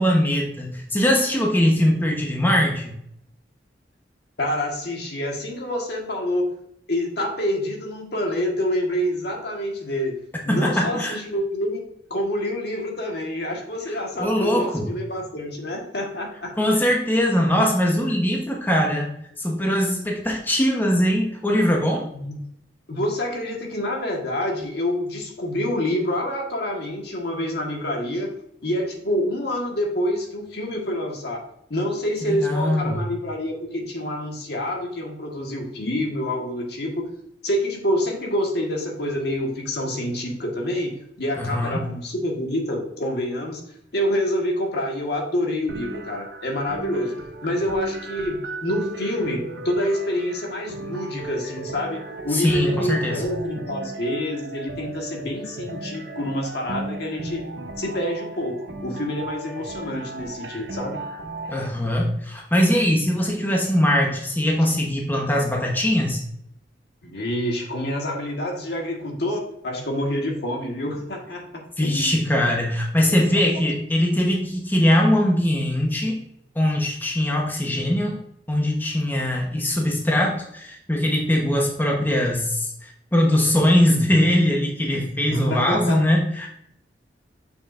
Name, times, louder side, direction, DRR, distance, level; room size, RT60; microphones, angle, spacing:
voice 1, 0.0-2.9 10.5-11.2 14.2-14.9 16.6-19.1 19.4-22.1 32.2-33.0 41.4-41.9 52.3-53.2 61.5-66.2 71.8-76.2 76.5-78.2 78.5-86.5, left 1 dB, 10° left, -1 dB, 1.0 m, -21 dB
voice 2, 4.4-6.6 6.9-16.5 16.7-16.9 22.1-22.4 22.9-31.4 31.7-37.1 37.4-43.6 43.9-47.2 47.4-57.4 57.8-61.0 67.0-72.1 73.1-73.6 85.3-86.2, left 1 dB, 65° left, 0 dB, 1.5 m, -27 dB
sound 1, 45.7-61.7, right 2 dB, 75° right, 1.0 m, -36 dB
6.8 x 6.2 x 2.5 m, 0.74 s
head